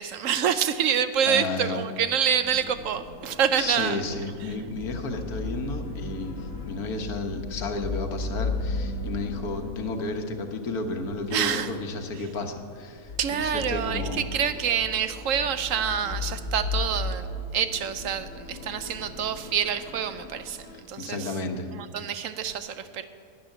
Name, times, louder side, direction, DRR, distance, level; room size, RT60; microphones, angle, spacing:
voice 1, 0.0-4.0 4.4-4.5 11.3-11.7 12.2-12.3 13.2-17.3 17.5-21.3 21.7-23.1, right 8 dB, 70° right, 11 dB, 1.0 m, -27 dB
voice 2, 1.3-1.8 3.6-14.3 20.7-21.7, left 3 dB, 85° left, 5 dB, 1.7 m, -32 dB
sound 1, 2.4-20.8, left 3 dB, 50° left, 1.6 m, -36 dB
12.0 x 9.6 x 9.0 m, 2.3 s
omnidirectional pair, 1.5 m